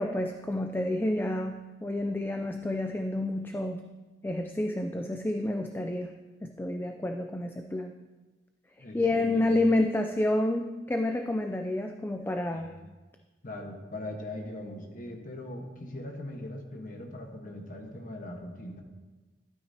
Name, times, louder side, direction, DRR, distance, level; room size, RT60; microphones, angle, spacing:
voice 1, 0.0-3.8 4.2-6.1 6.4-7.9 8.9-12.7, left 1 dB, 10° left, 5 dB, 0.3 m, -29 dB
voice 2, 8.8-9.5 12.5-12.8 13.4-18.8, left 1 dB, 50° left, 2 dB, 1.3 m, -40 dB
12.5 x 8.8 x 2.8 m, 1.2 s
head